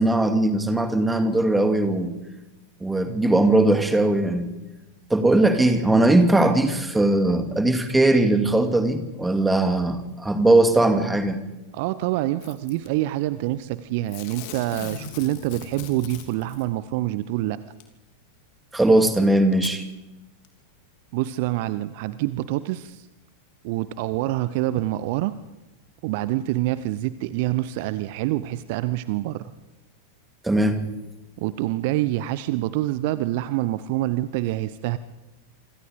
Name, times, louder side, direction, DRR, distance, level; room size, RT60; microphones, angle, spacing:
voice 1, 0.0-2.1 2.8-4.5 5.1-11.4 18.7-19.8 30.4-30.9, right 2 dB, 5° right, 2.4 m, -19 dB
voice 2, 11.7-17.6 21.1-23.1 23.6-25.3 26.0-29.5 31.4-35.0, right 15 dB, 50° right, 0.8 m, -26 dB
Packing tape duct tape / Tearing, 12.4-12.9 14.1-16.7 17.8-17.9 18.8-18.9 19.5-19.8 20.4-20.5, left 10 dB, 45° left, 3.1 m, -40 dB
27.5 x 25.5 x 5.1 m
figure-of-eight pair, 90°, 0 cm